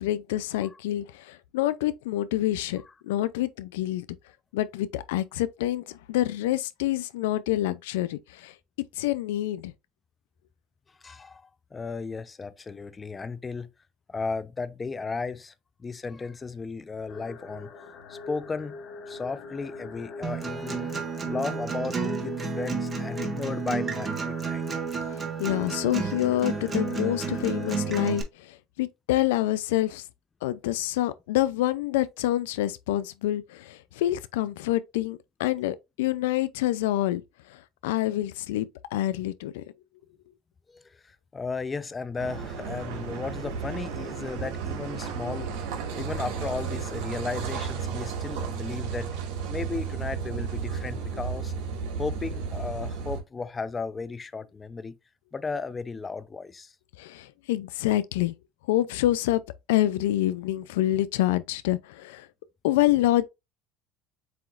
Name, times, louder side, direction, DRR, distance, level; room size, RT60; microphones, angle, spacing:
voice 1, 0.0-4.1 4.5-8.5 8.9-9.7 25.4-30.0 30.4-37.2 37.5-39.6 45.2-45.4 57.0-58.3 58.7-59.4 59.7-62.3 62.6-63.3, left 14 dB, 90° left, 0.3 m, -27 dB
voice 2, 11.0-13.7 14.1-15.5 15.8-17.7 18.1-18.8 19.1-20.9 21.2-24.6 40.7-45.5 45.9-49.1 49.5-51.5 52.0-55.0 55.3-56.7, left 4 dB, 25° left, 0.6 m, -35 dB
sound 1, 17.1-27.7, left 3 dB, 55° left, 1.4 m, -42 dB
Acoustic guitar, 20.2-28.2, right 5 dB, 25° right, 1.3 m, -31 dB
Car passing by / Idling / Accelerating revving vroom, 42.2-53.2, right 6 dB, 75° right, 1.6 m, -33 dB
7.6 x 2.8 x 2.4 m
supercardioid pair, 100°, 0 cm